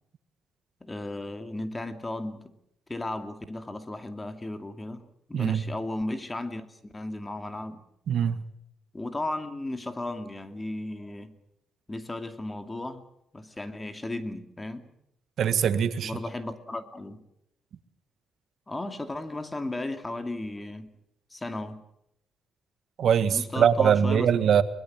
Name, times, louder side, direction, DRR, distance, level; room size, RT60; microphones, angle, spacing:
voice 1, 0.8-2.5 2.9-7.8 8.9-11.3 11.9-13.1 13.3-14.9 16.0-17.2 18.7-20.9 21.3-21.8 23.3-24.3, left 2 dB, 20° left, 8 dB, 2.4 m, -35 dB
voice 2, 5.3-5.6 8.1-8.4 15.4-16.1 23.0-24.6, right 8 dB, 65° right, 12 dB, 1.7 m, -22 dB
23.0 x 21.0 x 7.5 m, 0.79 s
cardioid pair, 90°, 0 cm